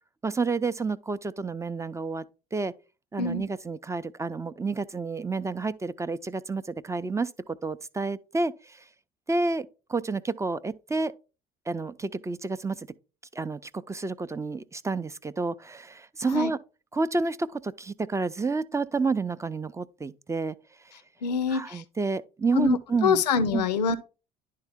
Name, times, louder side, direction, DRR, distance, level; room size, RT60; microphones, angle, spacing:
voice 1, 0.2-2.2 2.5-2.7 3.1-8.8 9.3-11.1 11.7-12.9 13.3-16.6 16.9-20.6 21.5-23.2 23.5-23.6, right 3 dB, 15° right, 0.4 m, -30 dB
voice 2, 21.2-21.8 22.5-24.0, left 5 dB, 90° left, 0.4 m, -25 dB
10.5 x 3.7 x 3.5 m
hypercardioid pair, 60°, 21 cm